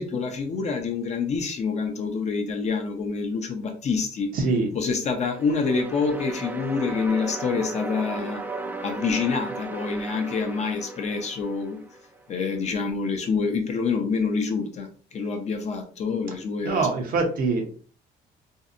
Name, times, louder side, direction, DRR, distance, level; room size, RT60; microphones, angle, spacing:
voice 1, 0.0-4.3 4.7-8.4 8.8-11.8 12.3-16.8, left 5 dB, 40° left, 4 dB, 0.6 m, -27 dB
voice 2, 4.3-4.7 16.6-17.7, right 3 dB, 60° right, 3 dB, 0.7 m, -24 dB
sound 1, 5.2-12.2, right 2 dB, 10° right, 0.3 m, -36 dB
2.6 x 2.0 x 2.4 m, 0.40 s
cardioid pair, 110°, 17 cm